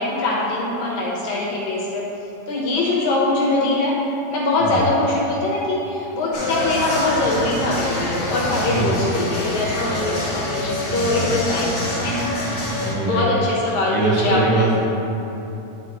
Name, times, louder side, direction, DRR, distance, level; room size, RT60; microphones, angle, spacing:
voice 1, 0.0-2.1 2.5-4.0 4.3-10.5 10.9-12.5 13.1-14.8, left 2 dB, 70° left, -4 dB, 2.3 m, -22 dB
sound 1, 6.3-12.9, left 1 dB, 45° left, 1.8 m, -26 dB
voice 2, 8.6-9.2 10.9-11.3 12.8-13.3 13.9-14.8, right 2 dB, 85° right, -6 dB, 3.2 m, -22 dB
10.5 x 5.9 x 3.1 m, 3.0 s
omnidirectional pair, 3.8 m